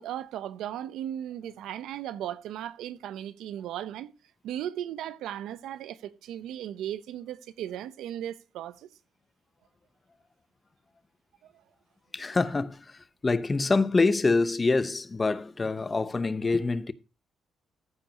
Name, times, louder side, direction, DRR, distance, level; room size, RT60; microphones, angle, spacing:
voice 1, 0.0-4.1 4.4-8.9, right 11 dB, 90° right, 0.8 m, -36 dB
voice 2, 12.1-16.9, left 3 dB, 25° left, 0.7 m, -26 dB
14.5 x 4.9 x 5.2 m
cardioid pair, 105°, 0 cm